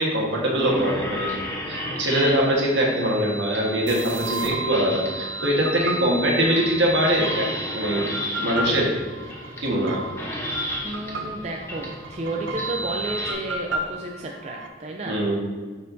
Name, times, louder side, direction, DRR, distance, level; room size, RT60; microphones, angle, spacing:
voice 1, 0.0-1.3 1.7-8.1 8.4-8.9 9.6-10.0 15.0-15.3, equal, 70° right, -2 dB, 1.5 m, -22 dB
sound 1, 0.6-13.3, equal, 15° left, 1.0 m, -33 dB
sound 2, 3.9-14.7, right 1 dB, 90° right, 0.7 m, -34 dB
voice 2, 10.8-15.2, right 2 dB, 35° right, 0 dB, 0.5 m, -32 dB
9.6 x 4.3 x 2.7 m, 1.5 s
head